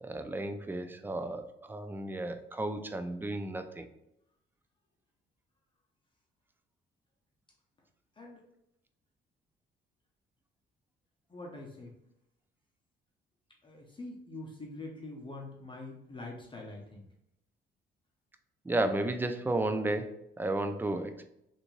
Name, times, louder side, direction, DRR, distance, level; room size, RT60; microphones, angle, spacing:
voice 1, 0.0-3.9 18.7-21.2, right 2 dB, 10° right, 8 dB, 0.3 m, -33 dB
voice 2, 11.3-11.9 13.6-17.1, left 2 dB, 25° left, -1 dB, 0.7 m, -44 dB
3.3 x 2.6 x 3.1 m, 0.81 s
cardioid pair, 90°, 20 cm